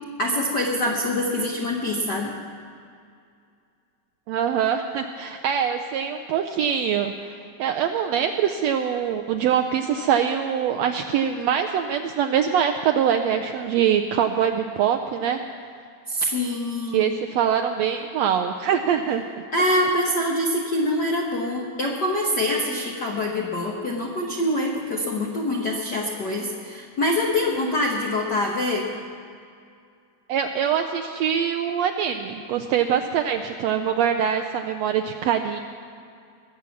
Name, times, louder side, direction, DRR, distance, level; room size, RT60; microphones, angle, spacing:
voice 1, 0.2-2.3 16.1-17.1 19.5-28.9, left 1 dB, 65° left, -1 dB, 1.0 m, -25 dB
voice 2, 4.3-7.3 7.6-15.4 16.9-19.2 30.3-35.6, right 8 dB, 80° right, 5 dB, 1.5 m, -23 dB
21.0 x 7.7 x 7.1 m, 2.3 s
omnidirectional pair, 3.6 m